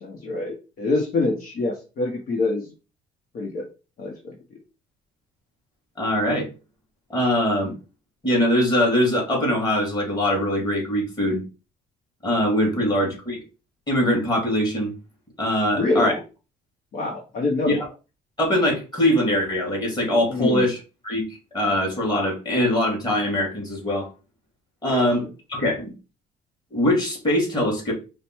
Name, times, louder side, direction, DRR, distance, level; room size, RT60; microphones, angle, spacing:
voice 1, 0.0-2.7 3.3-3.7 4.0-4.3 15.7-16.2 16.9-17.8 20.3-20.7, left 3 dB, 55° left, -1 dB, 1.1 m, -25 dB
voice 2, 6.0-6.5 7.1-7.7 8.2-11.4 12.2-13.4 13.9-14.9 15.4-16.2 17.7-17.9 18.4-21.2 21.5-24.1 24.8-25.9 26.7-27.9, left 1 dB, 25° left, -1 dB, 2.4 m, -22 dB
4.8 x 2.2 x 4.6 m, 0.32 s
cardioid pair, 110°, 17 cm